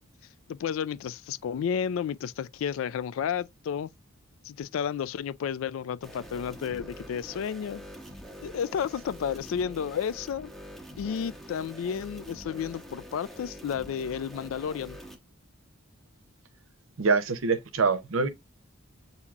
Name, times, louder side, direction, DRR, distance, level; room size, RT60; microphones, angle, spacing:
voice 1, 0.5-3.9 4.4-7.8 8.4-10.5 11.0-15.0, left 7 dB, 70° left, 0.3 m, -32 dB
sound 1, 6.0-15.2, equal, ahead, 0.8 m, -45 dB
voice 2, 17.0-18.3, right 4 dB, 70° right, 0.7 m, -25 dB
7.1 x 2.8 x 2.4 m
head